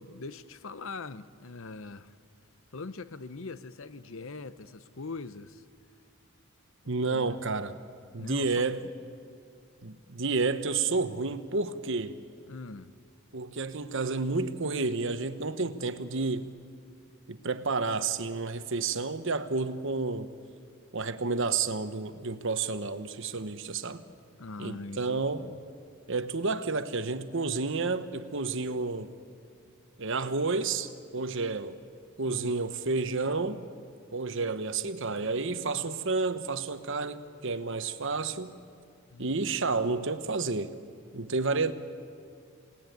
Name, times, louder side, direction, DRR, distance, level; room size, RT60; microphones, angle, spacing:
voice 1, 0.0-2.1 2.7-5.6 6.8-7.4 8.2-8.7 12.5-12.9 24.4-25.5 32.2-32.6 39.1-39.6, left 3 dB, 60° left, 0.8 m, -42 dB
voice 2, 6.9-7.8 8.1-8.8 9.8-12.2 13.3-16.5 17.3-20.3 20.9-24.0 24.6-25.5 26.1-29.1 30.0-31.8 32.2-33.6 34.1-38.6 39.2-40.7 41.1-41.7, right 3 dB, 55° right, 1.1 m, -30 dB
27.5 x 18.5 x 9.3 m
head